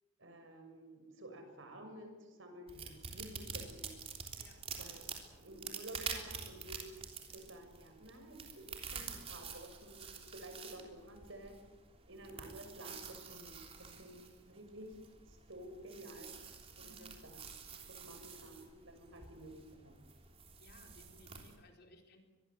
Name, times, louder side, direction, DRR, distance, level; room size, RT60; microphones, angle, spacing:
voice 1, 0.2-3.9 4.8-5.1 5.4-6.9 7.3-11.5 12.1-14.2 14.4-14.9 15.3-16.3 16.9-17.3 17.7-20.0, right 1 dB, 60° right, 5 dB, 6.5 m, -52 dB
sound 1, 2.7-21.5, right 6 dB, 25° right, 3.5 m, -48 dB
voice 2, 16.8-17.2 20.6-22.2, equal, 50° left, 3 dB, 4.2 m, -61 dB
25.0 x 22.0 x 7.9 m, 1.2 s
head